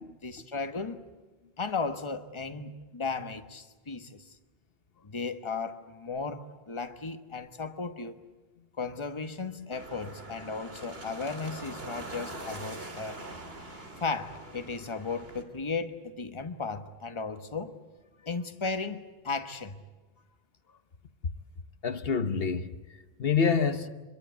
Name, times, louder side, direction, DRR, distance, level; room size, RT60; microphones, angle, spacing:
voice 1, 0.1-1.0 1.6-4.4 5.0-8.2 8.8-13.2 14.0-17.8 18.2-19.7, left 4 dB, 30° left, 1.2 m, -35 dB
sound 1, 9.7-15.4, right 2 dB, 75° right, 3.2 m, -43 dB
voice 2, 21.8-23.9, left 6 dB, 70° left, 1.2 m, -27 dB
25.0 x 22.5 x 8.2 m
omnidirectional pair, 1.0 m